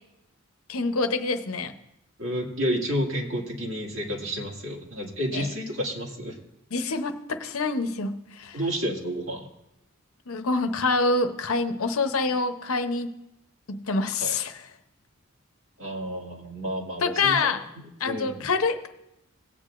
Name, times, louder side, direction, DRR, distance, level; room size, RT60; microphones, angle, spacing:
voice 1, 0.7-1.7 5.3-5.5 6.7-8.6 10.3-13.1 13.7-14.6 17.0-17.7 18.0-18.9, left 3 dB, 85° left, 8 dB, 0.8 m, -26 dB
voice 2, 2.2-6.4 8.5-9.5 14.2-14.3 15.8-18.5, equal, 65° right, -1 dB, 2.1 m, -31 dB
18.0 x 8.4 x 2.5 m, 0.86 s
head